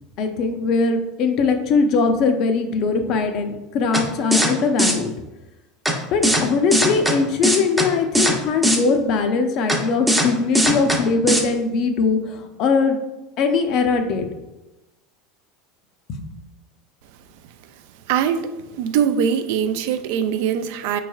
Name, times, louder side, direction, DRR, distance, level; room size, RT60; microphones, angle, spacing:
voice 1, 0.2-5.1 6.1-13.0 13.4-14.3 16.1-16.4, left 4 dB, 50° left, 6 dB, 0.5 m, -21 dB
sound 1, 3.9-4.0 4.3-4.5 4.8-4.9 5.9-6.0 6.2-6.4 6.7-7.1 7.4-7.9 8.1-8.3 8.6-8.8 9.7-9.8 10.1-10.3 10.5-11.0 11.3-11.4, equal, 5° right, 0.6 m, -18 dB
voice 2, 18.1-18.5 18.8-21.0, right 8 dB, 70° right, 9 dB, 0.3 m, -22 dB
4.4 x 3.1 x 2.3 m, 1.0 s
supercardioid pair, 120°, 0 cm